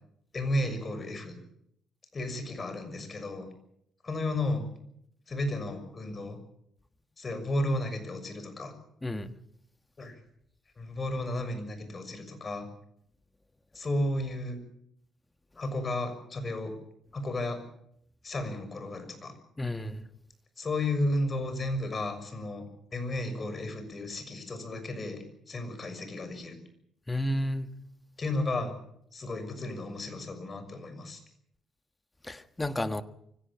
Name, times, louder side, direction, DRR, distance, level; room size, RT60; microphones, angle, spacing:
voice 1, 0.3-1.4 2.1-3.5 4.0-4.7 5.3-6.4 7.2-8.7 10.0-10.2 10.8-12.7 13.7-14.6 15.6-16.7 17.1-17.6 18.2-19.4 20.6-22.6 22.9-26.6 28.2-28.7 29.1-31.2, left 1 dB, 35° left, 9 dB, 6.5 m, -33 dB
voice 2, 9.0-9.3 19.6-20.0 27.1-27.7 32.3-33.0, left 1 dB, 15° left, 10 dB, 1.5 m, -31 dB
24.0 x 17.0 x 8.7 m, 0.74 s
cardioid pair, 90°, 0 cm